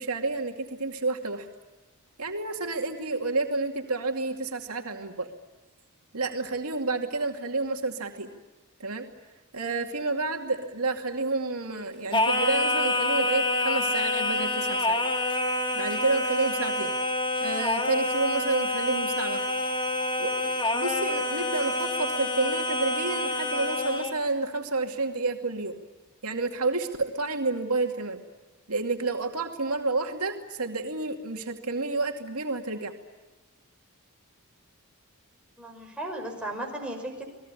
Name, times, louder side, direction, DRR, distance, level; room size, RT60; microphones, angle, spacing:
voice 1, 0.0-1.5 2.2-5.3 6.1-8.3 8.8-9.1 9.5-15.0 15.7-16.9 17.4-19.5 20.2-25.8 26.2-28.2 28.7-32.9, right 3 dB, 75° right, 3 dB, 2.5 m, -30 dB
Singing, 12.1-24.2, left 2 dB, 20° left, 2.0 m, -27 dB
voice 2, 35.6-37.2, right 1 dB, 5° right, 0 dB, 6.0 m, -35 dB
30.0 x 20.5 x 9.9 m, 1.2 s
head